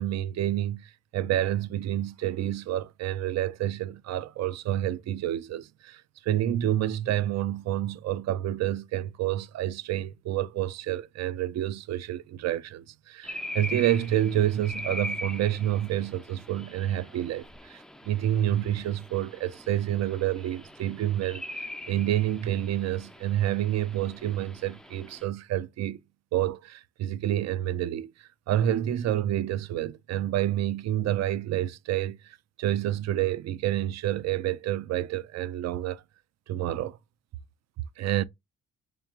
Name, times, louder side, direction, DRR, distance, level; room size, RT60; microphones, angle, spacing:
voice 1, 0.0-26.0 26.3-36.0 36.5-37.0 38.0-38.2, right 12 dB, 60° right, 0.5 m, -29 dB
sound 1, 13.2-25.2, left 1 dB, ahead, 0.4 m, -41 dB
3.6 x 3.2 x 2.9 m
cardioid pair, 90°, 30 cm